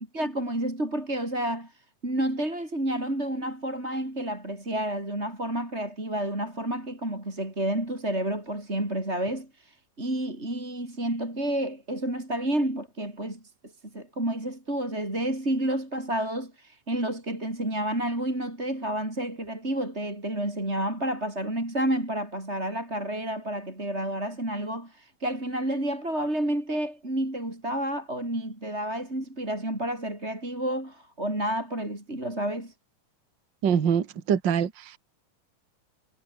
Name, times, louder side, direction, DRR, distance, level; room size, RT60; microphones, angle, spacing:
voice 1, 0.1-32.7, right 1 dB, 20° right, 7.2 m, -30 dB
voice 2, 33.6-35.0, right 7 dB, 40° right, 2.1 m, -24 dB
omnidirectional pair, 3.8 m